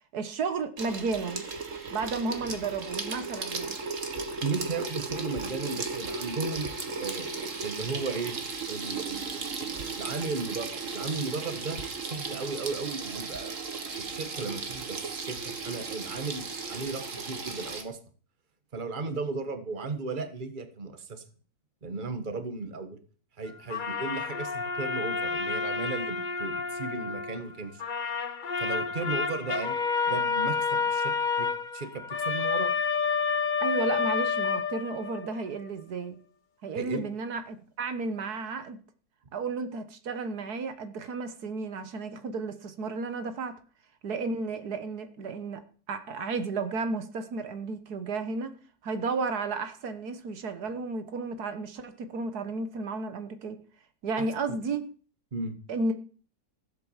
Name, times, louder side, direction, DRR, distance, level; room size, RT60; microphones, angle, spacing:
voice 1, 0.1-1.5 1.9-3.8 33.6-36.2 36.6-38.8 39.3-43.6 44.0-45.6 45.9-48.5 48.8-53.6 54.0-54.9 55.7-55.9, right 4 dB, 80° right, 1.8 m, -33 dB
Water tap faucet / Sink (filling or washing), 0.8-17.8, right 4 dB, 55° right, 2.0 m, -36 dB
voice 2, 4.4-6.7 7.0-7.3 7.6-8.4 8.7-13.5 14.0-18.0 18.7-21.2 21.8-23.0 23.4-27.8 28.6-29.8 30.0-32.7 36.7-37.1 54.2-54.3 55.3-55.6, right 4 dB, 35° right, 1.5 m, -35 dB
sound 1, 23.7-27.5 27.8-35.3, left 5 dB, 40° left, 0.9 m, -29 dB
15.5 x 8.1 x 7.3 m
omnidirectional pair, 1.6 m